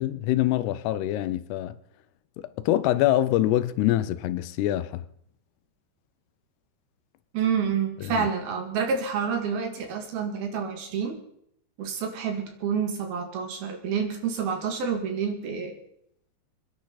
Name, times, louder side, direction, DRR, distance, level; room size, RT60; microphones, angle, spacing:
voice 1, 0.0-1.8 2.4-5.0 8.2-8.3, left 14 dB, 85° left, 2.8 m, -25 dB
voice 2, 7.3-11.2 11.8-15.8, right 6 dB, 70° right, 3.7 m, -28 dB
28.5 x 10.5 x 4.1 m
omnidirectional pair, 4.7 m